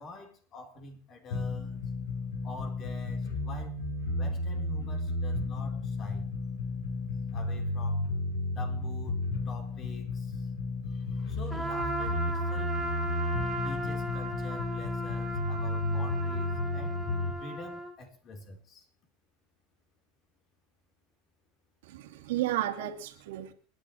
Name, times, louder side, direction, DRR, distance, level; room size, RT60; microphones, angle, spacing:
voice 1, 0.0-1.8 2.4-3.8 4.1-6.3 7.3-8.1 8.5-10.5 10.9-12.8 13.6-17.0 17.4-18.9, left 2 dB, 35° left, 3 dB, 4.1 m, -46 dB
sound 1, 1.3-17.3, left 2 dB, 80° left, 7.1 m, -33 dB
Trumpet, 11.5-17.9, right 1 dB, 5° left, 4.3 m, -36 dB
voice 2, 21.8-23.5, right 14 dB, 85° right, 4 dB, 2.6 m, -33 dB
29.5 x 10.5 x 3.2 m, 0.39 s
supercardioid pair, 140°, 0 cm